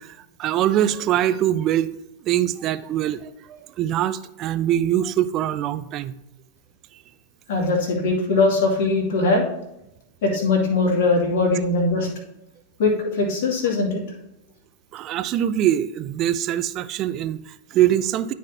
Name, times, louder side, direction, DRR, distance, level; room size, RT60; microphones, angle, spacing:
voice 1, 0.0-6.1 14.9-18.3, right 11 dB, 35° right, 13 dB, 0.4 m, -23 dB
voice 2, 7.5-9.4 10.2-12.1 12.8-14.0, left 3 dB, 50° left, -2 dB, 2.5 m, -21 dB
12.5 x 4.3 x 2.8 m, 0.86 s
figure-of-eight pair, 90°, 0 cm